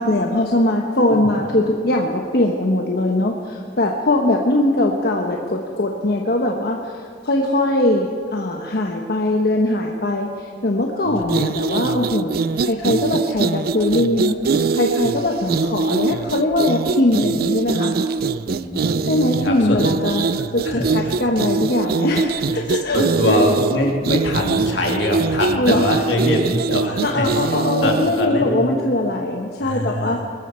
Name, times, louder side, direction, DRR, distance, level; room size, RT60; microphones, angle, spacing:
voice 1, 0.0-14.4 14.7-17.9 19.1-23.4 25.6-25.9 27.0-30.2, left 1 dB, 60° left, 1 dB, 1.1 m, -21 dB
sound 1, 11.2-28.3, right 4 dB, 55° right, 0.4 m, -22 dB
voice 2, 18.5-19.0 19.4-19.8 20.6-21.1 22.9-28.7 29.6-30.2, left 1 dB, 80° left, -1 dB, 3.0 m, -23 dB
22.5 x 13.5 x 4.4 m, 2.2 s
head